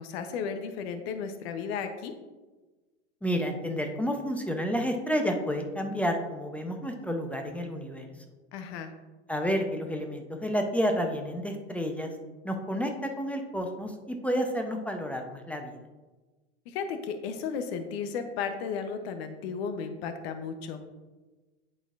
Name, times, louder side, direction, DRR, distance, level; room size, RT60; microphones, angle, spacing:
voice 1, 0.0-2.1 8.5-8.9 16.7-20.8, left 6 dB, 60° left, 8 dB, 0.8 m, -34 dB
voice 2, 3.2-8.1 9.3-12.1 12.4-15.8, equal, 5° left, 4 dB, 0.6 m, -30 dB
10.5 x 4.2 x 2.5 m, 1.2 s
hypercardioid pair, 100°, 36 cm